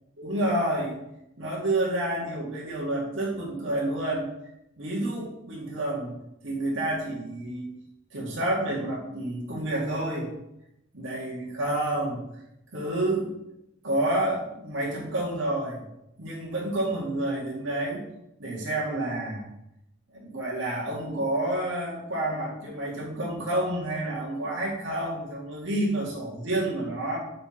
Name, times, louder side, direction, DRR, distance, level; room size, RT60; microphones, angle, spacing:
voice 1, 0.2-1.0 1.4-4.3 4.8-6.2 6.4-7.7 8.1-10.3 10.9-12.2 12.7-13.3 13.8-15.8 16.2-18.1 18.4-19.5 20.1-27.2, right 1 dB, 65° right, -4 dB, 2.1 m, -29 dB
6.5 x 4.4 x 3.8 m, 0.85 s
head